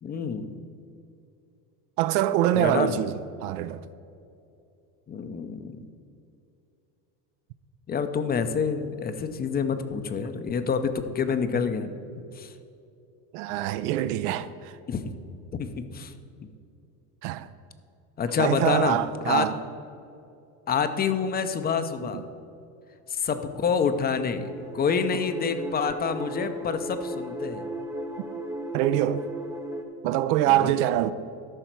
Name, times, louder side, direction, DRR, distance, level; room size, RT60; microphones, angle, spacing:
voice 1, 0.0-0.6 2.5-3.0 5.1-5.7 7.9-12.0 12.4-12.5 14.9-15.1 15.5-16.1 18.2-19.0 19.3-19.5 20.7-22.2 23.1-24.5 24.7-27.6 30.5-30.7, left 6 dB, 20° left, 0.5 m, -27 dB
voice 2, 2.0-3.8 13.3-14.7 17.2-17.5 18.4-19.5 22.0-22.2 28.7-29.2 30.0-31.1, right 13 dB, 75° right, 0.6 m, -24 dB
sound 1, 23.3-29.8, right 1 dB, 5° right, 0.8 m, -36 dB
13.5 x 5.6 x 4.5 m
supercardioid pair, 115°, 46 cm